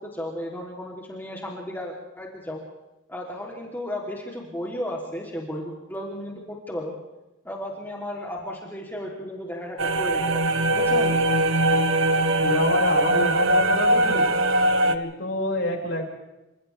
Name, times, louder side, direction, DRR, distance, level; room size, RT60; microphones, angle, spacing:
voice 1, 0.0-2.6 3.1-6.9 7.4-11.3, left 1 dB, 10° left, -2 dB, 3.2 m, -34 dB
sound 1, 9.8-15.0, right 1 dB, 75° right, 1.6 m, -21 dB
voice 2, 12.4-14.3 14.8-16.0, left 2 dB, 60° left, 0 dB, 6.0 m, -27 dB
29.0 x 27.0 x 3.5 m, 0.97 s
head